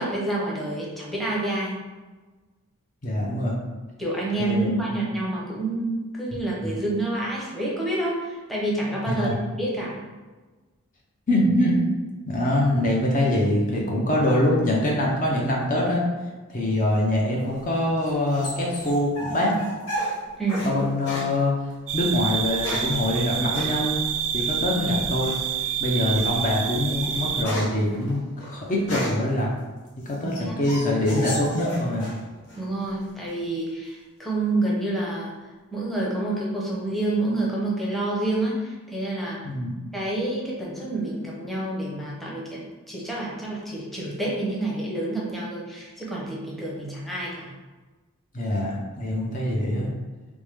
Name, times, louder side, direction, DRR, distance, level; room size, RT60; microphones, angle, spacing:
voice 1, 0.0-1.7 4.0-10.0 20.4-20.7 30.2-30.6 32.6-35.3 35.7-39.4 39.9-47.5, right 2 dB, ahead, -5 dB, 0.8 m, -28 dB
voice 2, 3.0-3.6 4.4-4.9 6.6-6.8 9.1-9.4 11.3-11.7 12.3-16.0 16.5-19.6 20.6-21.5 21.9-24.0 24.3-25.4 25.8-29.5 30.1-32.1 39.4-39.7 48.3-49.9, left 1 dB, 35° left, -3 dB, 0.7 m, -24 dB
sound 1, 17.5-20.7 21.0-21.3 22.3-23.0 23.5-23.7 25.2-25.6 26.1-26.3 26.7-29.3 29.9-32.2 32.5-33.1, equal, 85° left, 1.1 m, -33 dB
sound 2, 21.9-27.4, right 8 dB, 60° right, 0.4 m, -28 dB
3.5 x 3.1 x 3.4 m, 1.3 s
head